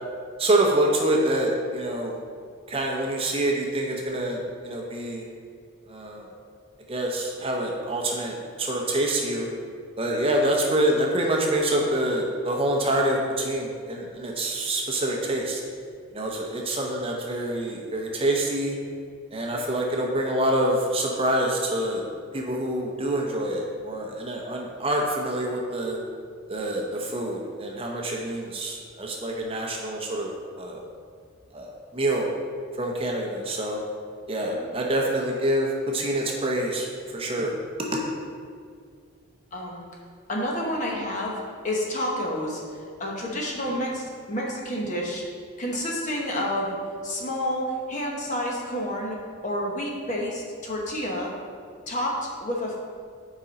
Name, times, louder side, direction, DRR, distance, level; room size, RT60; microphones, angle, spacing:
voice 1, 0.4-2.1 2.7-5.2 5.9-6.2 6.9-9.5 10.0-15.6 16.1-18.8 19.3-22.0 22.3-26.0 26.5-30.8 31.5-32.3 32.8-33.8 34.3-37.5 37.8-38.0, right 1 dB, 25° right, 0 dB, 0.7 m, -26 dB
voice 2, 39.5-39.8 40.3-42.6 43.0-45.2 45.6-46.7 47.0-49.2 49.4-51.3 51.9-52.8, equal, 35° left, -2 dB, 1.1 m, -29 dB
8.1 x 5.0 x 4.1 m, 2.1 s
head